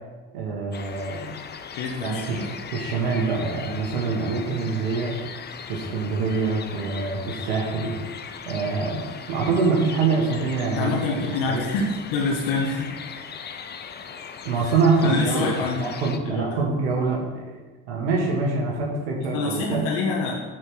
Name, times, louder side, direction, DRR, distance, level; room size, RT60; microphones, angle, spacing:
voice 1, 0.3-1.3 2.0-5.1 5.7-7.9 8.4-11.7 14.4-17.3 17.9-19.9, right 4 dB, 85° right, -2 dB, 1.8 m, -25 dB
sound 1, 0.7-16.2, left 6 dB, 30° left, 0.8 m, -39 dB
voice 2, 1.7-2.5 10.8-12.9 14.5-14.6 15.0-15.9 16.2-16.4 19.2-20.4, left 3 dB, 75° left, -2 dB, 1.5 m, -26 dB
7.8 x 5.2 x 6.4 m, 1.3 s
supercardioid pair, 85°, 31 cm